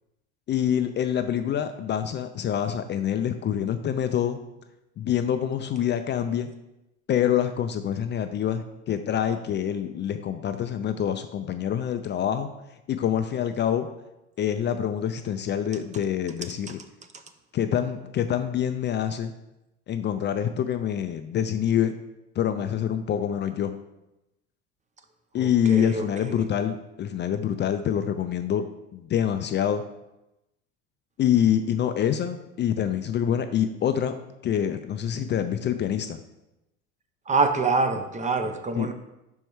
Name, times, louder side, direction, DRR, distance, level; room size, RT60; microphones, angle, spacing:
voice 1, 0.5-4.4 5.0-6.5 7.1-12.5 12.9-13.9 14.4-16.8 17.5-19.3 19.9-21.9 22.4-23.7 25.3-28.6 28.9-29.8 31.2-34.1 34.4-36.2 38.8-38.9, left 9 dB, 35° left, 9 dB, 0.4 m, -26 dB
voice 2, 25.4-26.4 37.3-38.9, right 3 dB, 20° right, 8 dB, 0.6 m, -26 dB
5.3 x 4.6 x 4.5 m, 0.92 s
supercardioid pair, 95°, 32 cm